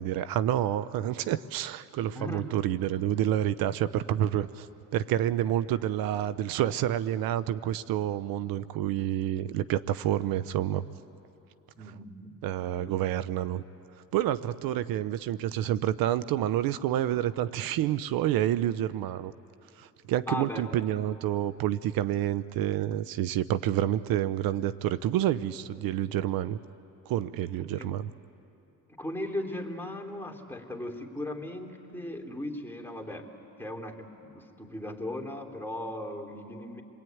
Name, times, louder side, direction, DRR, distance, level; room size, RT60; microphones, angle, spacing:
voice 1, 0.0-4.7 4.9-10.8 12.4-13.6 14.1-19.3 19.8-26.6 27.1-28.1, right 11 dB, 75° right, 15 dB, 0.8 m, -28 dB
voice 2, 2.1-2.6 11.8-12.3 12.8-13.0 14.4-14.5 20.3-20.7 27.8-27.9 29.0-33.3 33.6-36.8, left 1 dB, 5° left, 0 dB, 3.2 m, -37 dB
29.0 x 21.5 x 9.4 m, 2.8 s
cardioid pair, 90°, 35 cm